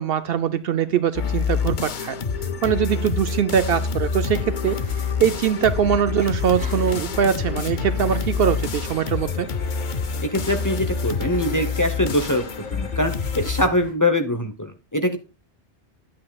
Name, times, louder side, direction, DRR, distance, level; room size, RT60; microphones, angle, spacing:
voice 1, 0.0-2.2 2.6-4.8 5.2-9.5, right 8 dB, 65° right, 12 dB, 0.7 m, -22 dB
sound 1, 1.2-13.7, left 5 dB, 50° left, 0.8 m, -27 dB
sound 2, 4.6-13.9, left 1 dB, 5° right, 3.1 m, -41 dB
voice 2, 10.2-15.2, left 1 dB, 20° left, 6 dB, 0.8 m, -23 dB
9.6 x 8.5 x 2.3 m, 0.31 s
omnidirectional pair, 1.2 m